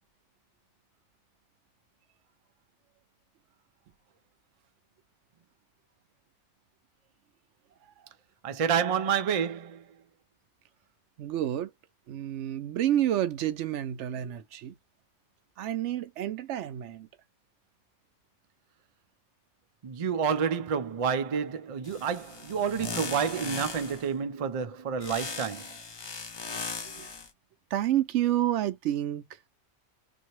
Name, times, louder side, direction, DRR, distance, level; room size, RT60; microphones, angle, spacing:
voice 1, 8.4-9.9 19.8-25.7, right 7 dB, 50° right, 0.4 m, -29 dB
voice 2, 11.2-11.7 12.1-14.7 15.6-17.1 26.8-27.1 27.7-29.4, right 12 dB, 75° right, 0.9 m, -29 dB
sound 1, 21.8-24.1 25.0-27.3, left 4 dB, 50° left, 0.3 m, -38 dB
2.8 x 2.7 x 3.0 m
omnidirectional pair, 1.2 m